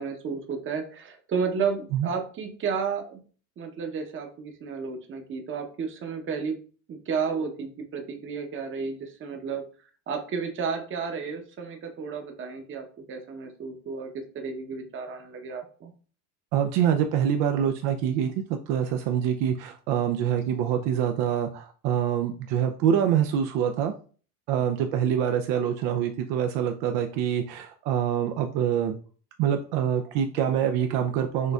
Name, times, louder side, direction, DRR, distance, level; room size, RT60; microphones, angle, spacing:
voice 1, 0.0-3.2 3.6-6.6 6.9-9.6 10.1-15.9, right 5 dB, 30° right, 4 dB, 0.9 m, -32 dB
voice 2, 16.5-23.9 24.5-28.9 29.4-31.5, right 9 dB, 60° right, 5 dB, 0.6 m, -25 dB
6.3 x 2.6 x 2.3 m, 0.40 s
supercardioid pair, 115°, 43 cm